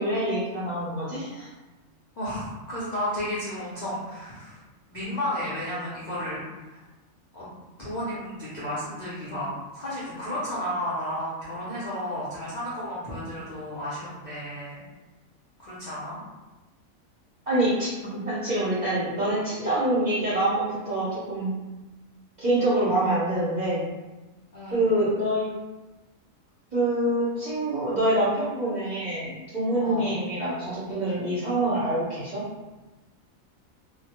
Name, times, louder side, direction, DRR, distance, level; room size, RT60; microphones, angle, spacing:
voice 1, 0.0-1.5 17.5-21.6 22.4-23.9 24.7-25.5 26.7-32.4, right 1 dB, 45° right, -9 dB, 0.6 m, -26 dB
voice 2, 2.2-4.6 4.9-6.4 6.7-6.8 7.3-7.5 7.8-14.8 15.6-16.2 24.5-25.0 29.8-30.2, equal, 55° left, -10 dB, 0.5 m, -33 dB
2.2 x 2.1 x 2.8 m, 1.1 s
omnidirectional pair, 1.4 m